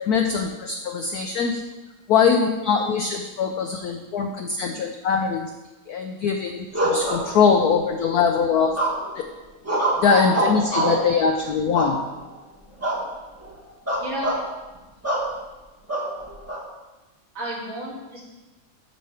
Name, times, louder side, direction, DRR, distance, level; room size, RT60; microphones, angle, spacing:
voice 1, 0.0-1.6 2.1-5.5 5.9-8.8 9.2-9.3 10.0-12.0, left 6 dB, 85° left, 4 dB, 0.8 m, -22 dB
sound 1, 6.7-7.8 8.8-9.2 9.7-11.1 11.7-12.3 12.8-13.1 13.4-13.5 13.9-14.4 15.0-15.3 15.9-16.6, right 1 dB, 10° right, 0.9 m, -24 dB
voice 2, 14.0-14.4 17.3-18.2, right 1 dB, 65° right, -5 dB, 3.0 m, -32 dB
13.0 x 5.3 x 3.3 m, 1.1 s
omnidirectional pair, 2.3 m